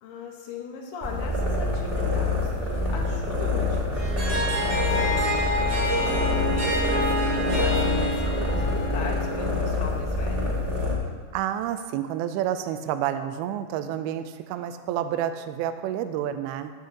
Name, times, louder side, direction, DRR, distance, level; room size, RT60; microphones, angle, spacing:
voice 1, 0.0-10.6, left 5 dB, 70° left, 0 dB, 3.1 m, -39 dB
sound 1, 1.0-10.9, left 2 dB, 15° right, 1.7 m, -26 dB
Harp, 3.9-9.7, equal, 35° right, 2.5 m, -27 dB
voice 2, 11.3-16.7, right 10 dB, 85° right, 9 dB, 2.2 m, -29 dB
19.0 x 8.3 x 2.9 m, 1.5 s
omnidirectional pair, 5.1 m